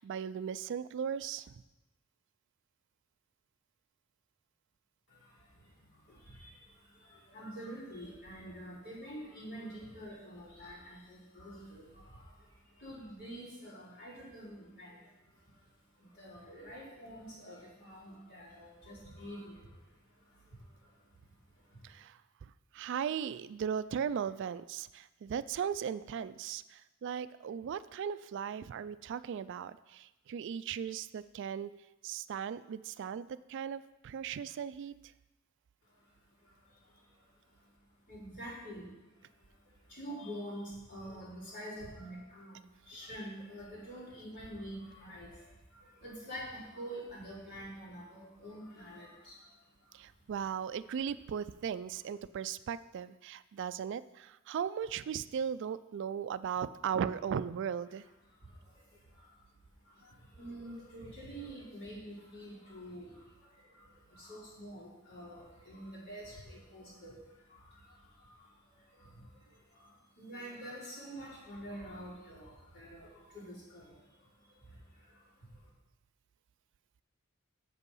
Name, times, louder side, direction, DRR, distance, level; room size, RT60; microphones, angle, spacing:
voice 1, 0.0-1.5 21.8-31.7 32.0-34.9 49.9-58.0, right 7 dB, 60° right, 15 dB, 0.3 m, -37 dB
voice 2, 7.3-11.8 12.8-14.9 16.2-19.5 38.1-38.8 40.0-42.5 42.9-45.3 46.0-49.1 60.4-63.1 64.2-67.1 70.2-72.5 72.7-73.1 73.3-73.8, equal, 55° left, -7 dB, 3.9 m, -46 dB
8.2 x 6.9 x 5.5 m, 1.0 s
head